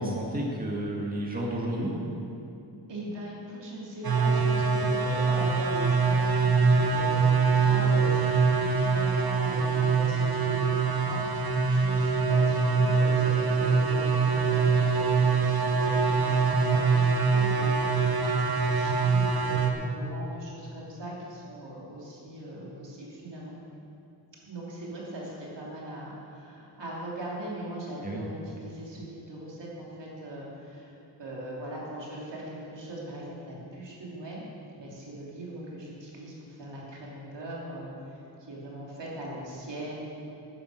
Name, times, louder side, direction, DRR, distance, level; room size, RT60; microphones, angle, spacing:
voice 1, 0.0-1.9 28.0-28.2, right 1 dB, 20° right, -3 dB, 2.0 m, -31 dB
voice 2, 2.9-23.5 24.4-30.9 31.2-34.4 34.7-40.1, right 1 dB, 75° right, -5 dB, 3.0 m, -40 dB
sound 1, 4.0-19.7, right 5 dB, 55° right, 1.1 m, -24 dB
10.5 x 9.5 x 6.3 m, 2.7 s
wide cardioid pair, 70°, 43 cm